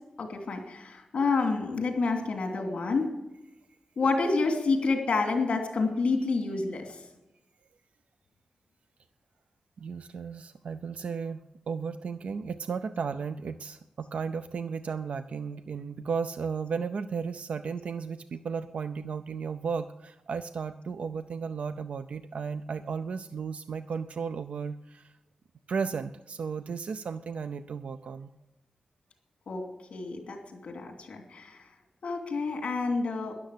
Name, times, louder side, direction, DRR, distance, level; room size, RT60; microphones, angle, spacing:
voice 1, 0.2-3.1 4.0-6.9 29.5-29.6 29.9-30.4 30.6-31.6 32.0-33.3, left 3 dB, 75° left, 3 dB, 2.8 m, -28 dB
voice 2, 9.8-25.1 25.7-28.3, right 5 dB, 75° right, 11 dB, 0.5 m, -34 dB
13.0 x 11.0 x 8.4 m, 0.95 s
wide cardioid pair, 170°, 2 cm